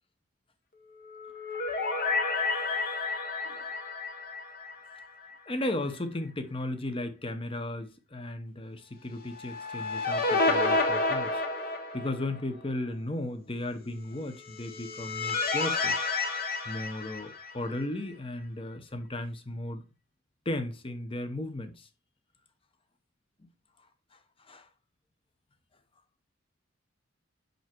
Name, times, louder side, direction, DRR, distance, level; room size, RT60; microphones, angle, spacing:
sound 1, 1.0-5.3 5.6-5.7 9.3-12.4 14.4-17.8, left 3 dB, 50° left, 1.3 m, -30 dB
voice 1, 5.5-16.0 16.6-19.8 20.4-21.9 24.1-24.7, left 1 dB, 30° left, 0.9 m, -35 dB
5.8 x 5.4 x 4.5 m
head